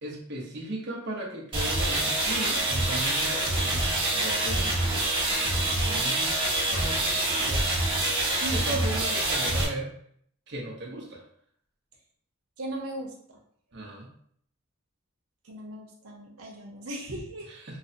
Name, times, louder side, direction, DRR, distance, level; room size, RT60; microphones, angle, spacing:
voice 1, 0.0-6.3 6.6-10.0 10.5-11.2 13.7-14.1 17.5-17.8, right 1 dB, 55° right, -2 dB, 0.9 m, -37 dB
sound 1, 1.5-9.6, right 2 dB, 25° right, 1.4 m, -26 dB
voice 2, 8.4-8.8 12.6-13.4 15.4-17.5, right 1 dB, 90° right, 0 dB, 1.0 m, -37 dB
5.2 x 2.1 x 2.7 m, 0.64 s
head